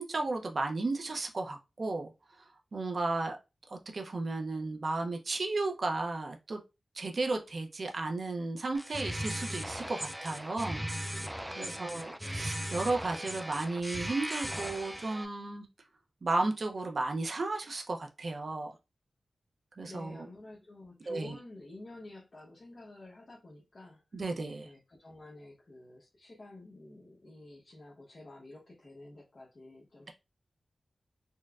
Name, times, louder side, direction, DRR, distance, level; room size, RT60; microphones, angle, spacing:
voice 1, 0.0-2.1 2.7-3.4 3.9-6.6 6.9-10.9 11.5-15.7 16.2-18.7 19.8-20.3 21.1-21.4 24.1-24.7, right 3 dB, 60° right, 4 dB, 0.5 m, -34 dB
sound 1, 8.7-15.3, equal, 5° right, 0.3 m, -38 dB
voice 2, 11.5-12.6 19.9-24.2 24.6-30.1, left 2 dB, 55° left, -5 dB, 1.0 m, -50 dB
4.3 x 2.1 x 2.3 m, 0.26 s
wide cardioid pair, 90°, 0 cm